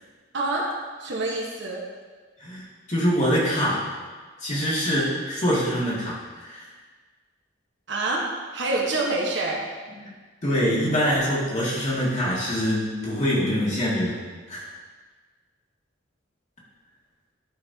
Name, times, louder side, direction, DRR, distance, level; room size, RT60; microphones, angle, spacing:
voice 1, 0.3-0.7 1.0-1.8 7.9-9.6, right 2 dB, 60° right, -1 dB, 1.2 m, -26 dB
voice 2, 2.4-3.8 4.4-6.7 10.0-10.1 10.4-14.2 14.5-14.7, equal, 35° left, -7 dB, 2.1 m, -24 dB
11.5 x 5.4 x 2.8 m, 1.4 s
head